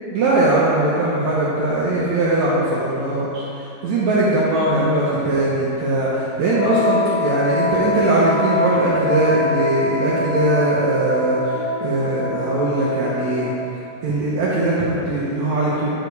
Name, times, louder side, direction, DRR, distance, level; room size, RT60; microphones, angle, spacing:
voice 1, 0.1-13.5 14.0-15.9, right 2 dB, 75° right, -7 dB, 1.6 m, -20 dB
Wind instrument woodwind instrument, 6.5-13.8, left 4 dB, 85° left, 2.8 m, -24 dB
10.5 x 5.0 x 4.6 m, 2.9 s
omnidirectional pair, 4.5 m